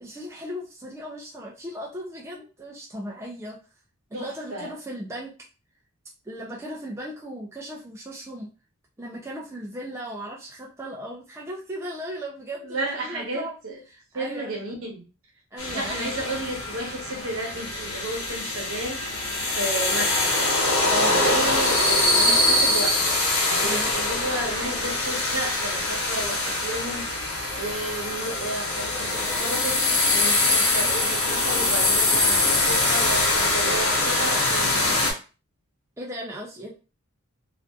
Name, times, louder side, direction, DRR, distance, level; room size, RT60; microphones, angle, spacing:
voice 1, 0.0-3.6 4.1-5.3 6.2-8.5 9.0-13.5 13.9-14.5 15.5-16.2 20.8-21.1 23.6-23.9 36.0-36.7, equal, 10° right, 0.3 m, -37 dB
voice 2, 4.1-4.7 12.6-13.8 14.1-15.0 15.7-20.4 21.0-35.1, right 1 dB, 70° right, 0.9 m, -33 dB
sound 1, 15.6-35.1, left 2 dB, 80° left, 0.8 m, -23 dB
2.5 x 2.4 x 2.3 m
head